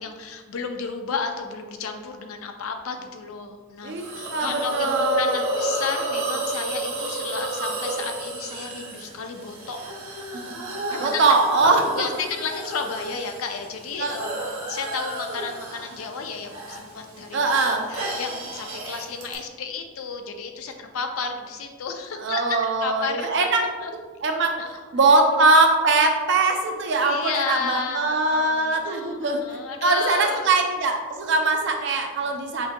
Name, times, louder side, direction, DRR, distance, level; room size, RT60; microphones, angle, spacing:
voice 1, 0.0-9.8 10.0-10.4 10.9-17.6 17.9-23.3 23.6-23.9 24.6-24.8 25.1-25.2 27.0-30.5 32.2-32.4, left 5 dB, 75° left, 5 dB, 0.5 m, -32 dB
voice 2, 3.8-5.4 10.4-10.7 11.0-12.1 14.0-14.1 17.3-17.9 22.2-23.6 24.2-24.6 24.9-29.4 29.8-32.7, right 3 dB, 55° right, 4 dB, 0.4 m, -21 dB
Hiss, 4.0-19.3, right 1 dB, 80° right, 0.9 m, -31 dB
5.8 x 2.7 x 2.2 m, 1.4 s
head